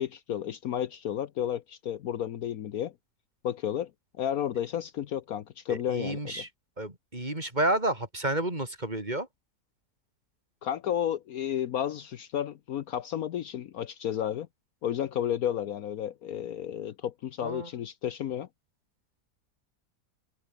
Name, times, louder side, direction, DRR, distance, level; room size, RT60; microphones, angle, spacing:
voice 1, 0.0-2.9 3.4-3.9 4.2-6.4 10.6-14.5 14.8-18.5, left 10 dB, 65° left, 1.2 m, -32 dB
voice 2, 5.7-6.5 6.8-9.3 17.4-17.7, right 1 dB, 25° right, 4.3 m, -30 dB
open air
omnidirectional pair, 1.7 m